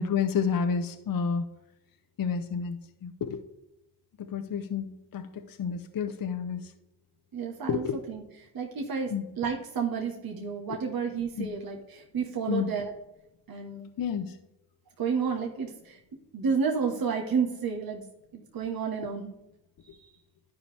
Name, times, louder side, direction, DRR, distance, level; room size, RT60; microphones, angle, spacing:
voice 1, 0.0-1.5 2.2-3.4 4.2-6.7 7.7-8.0 9.1-9.2 11.4-11.5 12.5-12.7 14.0-14.4, left 6 dB, 45° left, 7 dB, 0.8 m, -30 dB
voice 2, 7.3-8.2 8.5-12.9 13.5-13.9 15.0-16.0 16.3-18.0 18.3-19.3, right 6 dB, 50° right, 1 dB, 1.3 m, -31 dB
11.5 x 5.0 x 3.4 m, 0.90 s
supercardioid pair, 50°, 47 cm